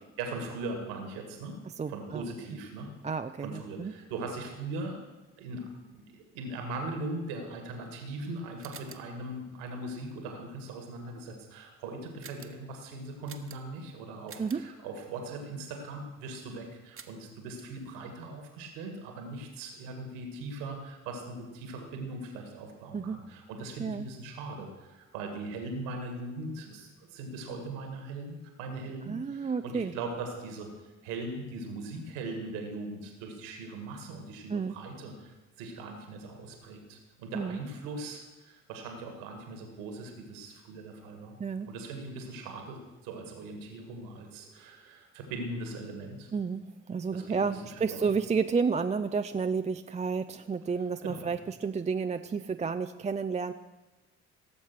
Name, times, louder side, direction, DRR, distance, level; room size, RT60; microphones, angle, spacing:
voice 1, 0.2-1.6 1.9-2.9 3.4-5.0 5.4-30.7 31.0-41.4 41.6-46.3 47.1-48.1 51.0-51.3, right 2 dB, 75° right, 4 dB, 2.0 m, -40 dB
voice 2, 1.8-2.2 3.0-3.9 14.4-14.6 22.9-23.2 23.8-24.1 29.1-29.9 34.5-34.8 37.3-37.6 41.4-41.7 46.3-53.5, right 5 dB, 20° right, 8 dB, 0.5 m, -31 dB
sound 1, 8.6-9.2 12.2-12.7 13.3-13.8 14.3-14.7 17.0-17.3, right 6 dB, 35° right, 1.2 m, -49 dB
17.5 x 7.2 x 6.1 m, 1.1 s
hypercardioid pair, 45°, 36 cm